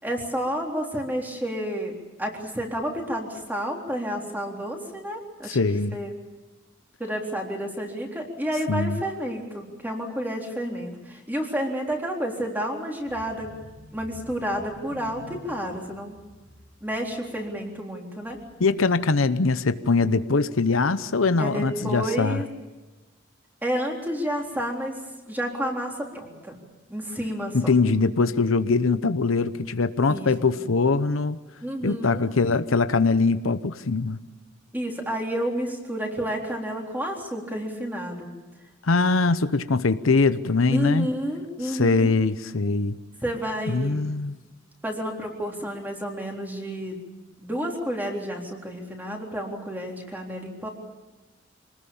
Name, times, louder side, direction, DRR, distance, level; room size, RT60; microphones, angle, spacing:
voice 1, 0.0-5.6 5.9-6.1 7.0-13.5 13.9-16.2 16.8-18.4 21.4-22.5 23.6-24.9 25.3-26.6 26.9-27.7 30.1-30.7 31.6-32.3 34.7-38.3 40.7-42.1 43.2-44.1 44.8-47.0 47.4-50.7, equal, 10° right, 0 dB, 3.7 m, -30 dB
voice 2, 5.5-6.0 8.7-9.0 18.6-22.4 27.5-31.4 31.8-34.2 38.8-41.1 41.6-43.0 43.7-44.4, left 3 dB, 85° left, 12 dB, 0.9 m, -22 dB
sound 1, 13.0-18.8 19.1-19.4 19.7-19.8, equal, 65° right, 7.5 m, -49 dB
26.0 x 19.5 x 7.2 m, 1.2 s
head